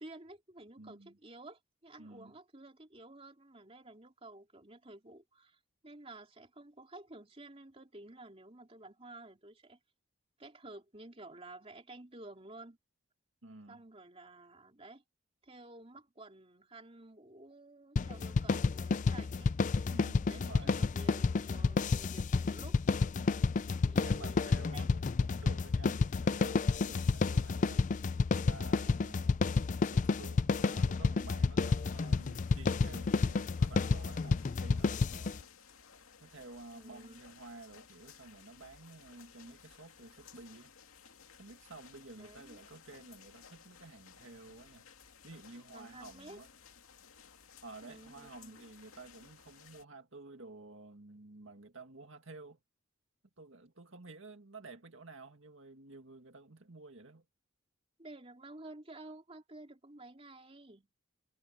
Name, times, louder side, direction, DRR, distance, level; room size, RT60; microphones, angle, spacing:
voice 1, 0.0-9.8 10.4-12.8 13.7-15.0 15.4-19.5 20.3-22.8 23.2-23.4 23.8-25.0 27.3-27.7 36.7-37.2 42.2-42.6 45.7-46.4 47.8-48.6 58.0-60.9, right 2 dB, 25° right, 3.3 m, -52 dB
voice 2, 0.8-1.2 2.0-2.3 13.4-13.8 19.9-20.7 24.0-28.1 28.4-29.5 29.9-35.5 36.2-40.7 41.1-44.9 45.2-46.5 47.6-52.6 53.4-57.2, right 3 dB, 65° right, 1.9 m, -52 dB
sound 1, 18.0-35.4, left 4 dB, 35° left, 0.4 m, -30 dB
sound 2, 31.6-49.8, left 6 dB, 80° left, 2.4 m, -58 dB
head